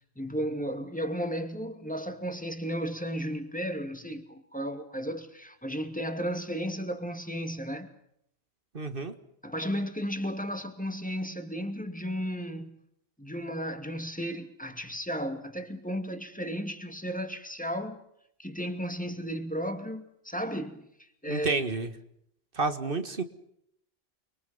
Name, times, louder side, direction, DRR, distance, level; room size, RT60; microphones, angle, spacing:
voice 1, 0.2-7.9 9.4-12.8 13.2-18.0 18.4-20.8 21.2-21.6, equal, 5° left, 2.5 m, -34 dB
voice 2, 8.7-9.1 21.3-21.9 22.6-23.2, right 3 dB, 55° right, 2.1 m, -30 dB
30.0 x 23.5 x 5.6 m
omnidirectional pair, 1.1 m